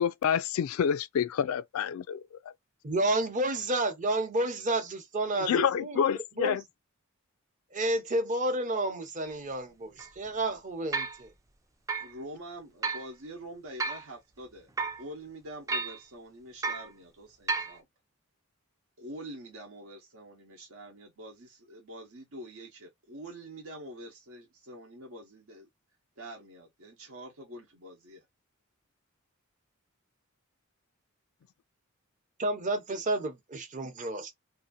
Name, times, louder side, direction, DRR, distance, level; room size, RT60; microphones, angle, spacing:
voice 1, 0.0-2.2 5.4-6.6, left 8 dB, 70° left, 0.3 m, -28 dB
voice 2, 2.8-6.0 6.4-6.6 7.7-11.3 32.4-34.3, right 1 dB, 35° right, 0.7 m, -30 dB
sound 1, 9.3-9.4 10.0-10.1 10.9-11.2 11.9-12.1 12.8-13.1 13.8-14.1 14.8-15.0 15.7-16.0 16.6-16.9 17.5-17.8, right 4 dB, 15° right, 0.3 m, -32 dB
voice 3, 12.0-14.7 15.0-17.9 19.0-25.7 26.2-28.2, right 1 dB, 75° right, 0.9 m, -45 dB
2.7 x 2.5 x 2.5 m
head